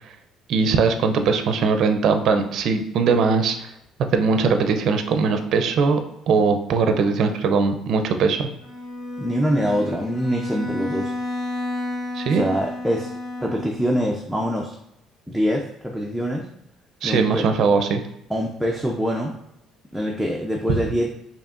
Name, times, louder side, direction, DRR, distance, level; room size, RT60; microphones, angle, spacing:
voice 1, 0.5-3.7 4.1-6.0 6.3-8.5 12.1-12.5 17.0-18.0, right 5 dB, 60° right, 7 dB, 0.5 m, -20 dB
Bowed string instrument, 8.6-13.9, left 2 dB, 60° left, 1.4 m, -31 dB
voice 2, 9.2-11.1 12.3-13.1 13.4-14.7 15.3-16.5 17.0-17.5 18.3-19.3 19.9-21.1, equal, ahead, -2 dB, 0.5 m, -24 dB
4.6 x 2.8 x 2.5 m, 0.81 s
cardioid pair, 105°, 0 cm